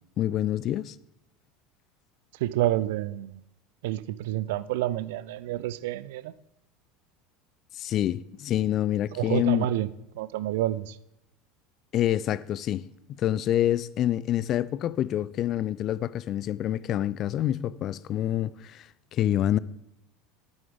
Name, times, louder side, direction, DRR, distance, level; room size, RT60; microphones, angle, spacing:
voice 1, 0.2-1.0 7.7-9.7 11.9-19.6, left 12 dB, 40° left, 0.3 m, -27 dB
voice 2, 2.4-3.4 3.8-6.3 9.2-9.9 10.2-11.0, right 14 dB, 60° right, 0.4 m, -28 dB
10.5 x 8.7 x 3.4 m
figure-of-eight pair, 70°, 0 cm